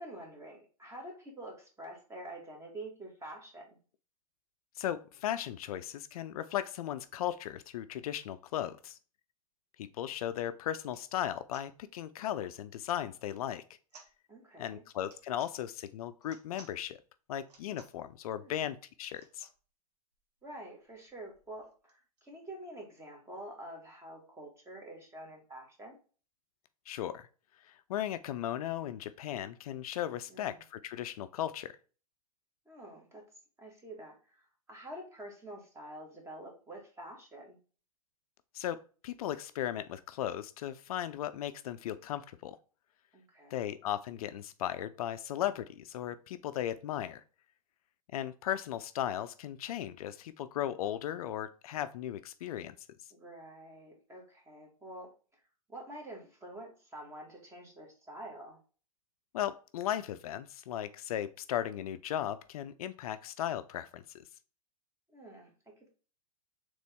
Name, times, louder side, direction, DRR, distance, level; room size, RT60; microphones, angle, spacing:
voice 1, 0.0-3.8 14.3-14.8 18.4-18.6 20.4-26.0 30.3-30.6 32.6-33.3 33.6-37.6 43.1-43.7 53.1-55.1 55.7-58.6 65.1-65.5, right 1 dB, 15° right, 0 dB, 1.5 m, -47 dB
voice 2, 4.8-9.0 9.8-13.6 14.6-17.0 17.3-19.5 26.9-27.3 27.6-31.7 38.5-38.8 39.0-42.6 43.5-47.2 48.1-52.7 59.3-64.2, left 11 dB, 65° left, 12 dB, 0.4 m, -36 dB
sound 1, 10.8-11.1 11.5-11.7 13.3-13.6 13.9-14.1 15.0-15.5 16.2-16.8 17.4-18.0 19.1-19.6 20.1-20.2 20.4-20.5 20.8-22.3, right 4 dB, 80° right, 1.2 m, -58 dB
4.0 x 3.1 x 3.5 m, 0.38 s
hypercardioid pair, 115°, 20 cm